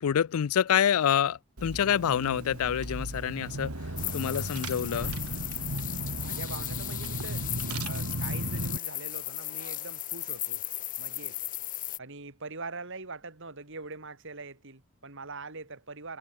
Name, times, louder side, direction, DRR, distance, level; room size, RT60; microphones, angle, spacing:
voice 1, 0.0-3.7 4.1-5.1, left 8 dB, 75° left, 0.4 m, -27 dB
Car / Engine, 1.6-8.8, right 1 dB, 85° right, 3.3 m, -35 dB
sound 1, 4.0-12.0, left 15 dB, 35° left, 0.9 m, -36 dB
voice 2, 6.2-7.5 7.9-10.6 11.0-11.4 12.0-16.2, right 3 dB, 60° right, 3.5 m, -43 dB
head